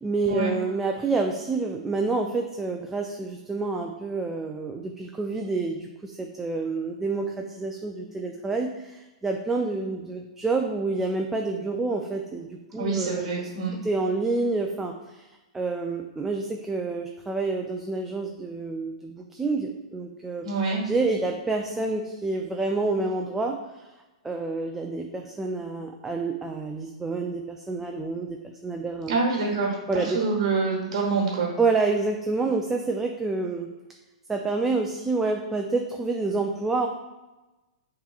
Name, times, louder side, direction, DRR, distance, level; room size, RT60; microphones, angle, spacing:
voice 1, 0.0-13.5 13.8-15.3 15.5-20.5 20.8-23.9 24.2-29.2 29.9-30.3 31.6-33.7 34.3-36.9, right 3 dB, 10° right, 2 dB, 0.3 m, -28 dB
voice 2, 12.8-13.7 20.4-20.8 29.1-31.5, right 4 dB, 70° right, -2 dB, 1.0 m, -26 dB
5.5 x 3.0 x 2.4 m, 1.1 s
hypercardioid pair, 130°, 3 cm